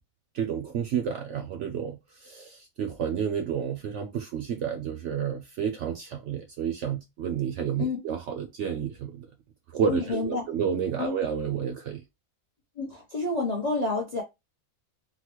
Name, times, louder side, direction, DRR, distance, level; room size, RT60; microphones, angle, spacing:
voice 1, 0.3-9.3 9.7-12.0, right 8 dB, 70° right, 0.7 m, -30 dB
voice 2, 9.9-10.4 11.0-11.2 12.8-14.2, left 3 dB, 45° left, 0.6 m, -29 dB
3.9 x 2.1 x 2.9 m
omnidirectional pair, 1.6 m